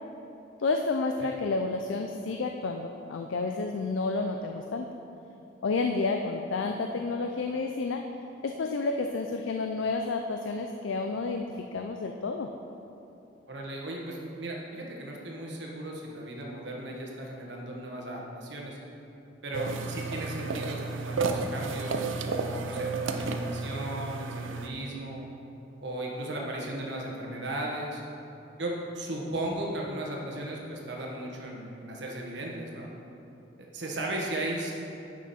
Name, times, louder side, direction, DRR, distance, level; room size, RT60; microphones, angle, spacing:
voice 1, 0.6-4.9 5.6-8.0 8.4-12.5, left 3 dB, 80° left, 4 dB, 0.4 m, -30 dB
voice 2, 13.5-18.8 19.4-25.2 25.8-28.0 28.6-32.9 33.7-34.7, right 1 dB, 65° right, -1 dB, 1.3 m, -36 dB
sound 1, 19.5-24.7, right 4 dB, 85° right, 0.5 m, -32 dB
9.3 x 6.2 x 4.2 m, 2.8 s
head